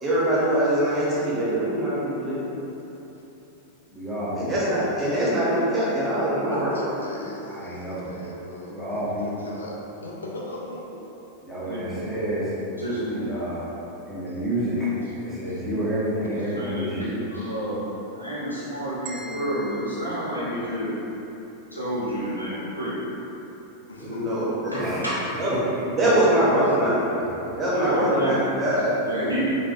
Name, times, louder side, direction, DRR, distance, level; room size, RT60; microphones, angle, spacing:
voice 1, 0.0-2.5 4.3-6.8 24.0-25.0 25.4-25.5 25.9-27.1 27.6-28.9, right 1 dB, 15° right, -9 dB, 1.1 m, -23 dB
voice 2, 3.9-4.5 7.5-8.1 8.7-9.5 11.4-12.5 13.1-13.7 14.1-14.9 15.2-17.3 24.7-25.0, equal, 5° left, -10 dB, 1.0 m, -29 dB
voice 3, 6.4-9.8 10.0-11.3 23.9-24.3 26.6-26.7, left 1 dB, 70° left, -3 dB, 0.3 m, -38 dB
voice 4, 12.8-13.2 16.6-17.0 17.2-17.8 18.1-20.9 21.7-23.0 24.7-25.1 27.7-28.3 29.0-29.5, right 1 dB, 85° left, -10 dB, 0.8 m, -30 dB
sound 1, 19.1-21.2, right 2 dB, 35° right, 0.4 m, -43 dB
4.8 x 2.2 x 2.4 m, 3.0 s
figure-of-eight pair, 90°, 0 cm